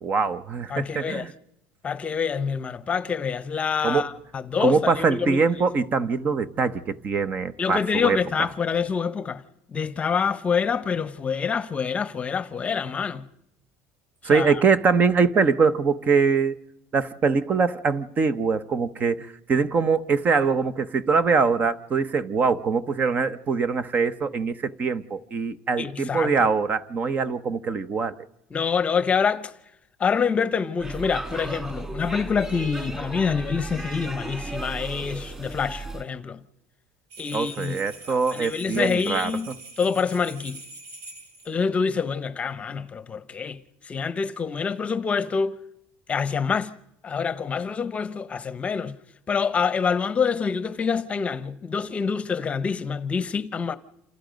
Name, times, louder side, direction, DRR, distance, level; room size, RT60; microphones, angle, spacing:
voice 1, 0.0-1.3 3.8-4.1 4.6-8.2 14.2-16.6 16.9-28.2 37.3-39.3, right 5 dB, 30° right, 1.0 m, -23 dB
voice 2, 0.7-1.3 1.8-5.4 7.6-9.4 9.7-13.2 14.2-14.5 25.8-26.3 28.5-29.5 30.0-36.4 37.2-37.8 38.1-39.5 39.8-40.6 41.5-43.6 43.8-45.6 46.1-46.7 47.0-49.0 49.3-53.8, left 6 dB, 20° left, 0.9 m, -26 dB
Speech / Shout / Subway metro underground, 30.8-36.0, right 2 dB, 15° right, 2.8 m, -35 dB
sound 1, 37.1-41.5, right 3 dB, 70° right, 4.1 m, -44 dB
28.0 x 27.5 x 5.2 m
cardioid pair, 145°, 6 cm